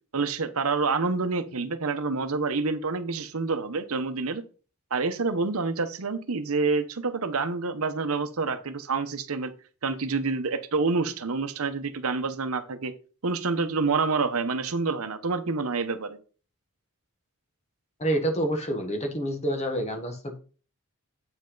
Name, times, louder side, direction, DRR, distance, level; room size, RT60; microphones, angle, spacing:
voice 1, 0.1-4.4 4.9-9.5 9.8-12.9 13.2-16.2, right 4 dB, 70° right, 10 dB, 0.8 m, -27 dB
voice 2, 18.0-20.4, right 1 dB, 30° left, 5 dB, 1.3 m, -28 dB
8.1 x 5.4 x 3.9 m, 0.37 s
head